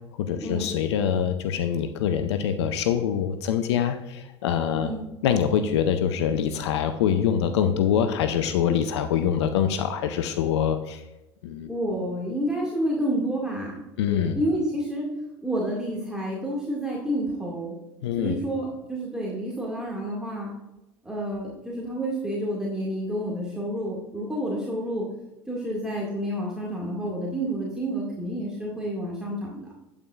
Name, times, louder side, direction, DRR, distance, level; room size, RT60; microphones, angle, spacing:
voice 1, 0.1-4.9 5.2-11.0 11.4-11.7 14.0-14.4 18.0-18.4, left 8 dB, 75° left, 9 dB, 0.5 m, -24 dB
voice 2, 11.7-13.8 14.1-15.1 15.4-17.8 18.2-20.5 21.0-25.1 25.5-29.7, right 1 dB, 5° right, -5 dB, 2.0 m, -29 dB
8.7 x 8.7 x 2.4 m, 0.96 s
hypercardioid pair, 75°, 14 cm